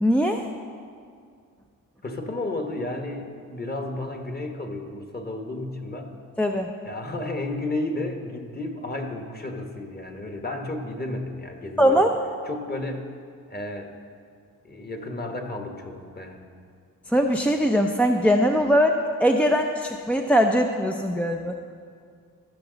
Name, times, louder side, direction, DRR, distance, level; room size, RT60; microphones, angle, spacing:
voice 1, 0.0-0.5 6.4-6.7 11.8-12.1 17.1-21.6, equal, 5° left, 3 dB, 0.5 m, -21 dB
voice 2, 2.0-6.1 6.8-12.0 12.4-13.1 13.5-13.9 14.6-16.5, left 2 dB, 25° left, 4 dB, 1.4 m, -32 dB
15.0 x 6.0 x 4.0 m, 2.2 s
supercardioid pair, 55°, 36 cm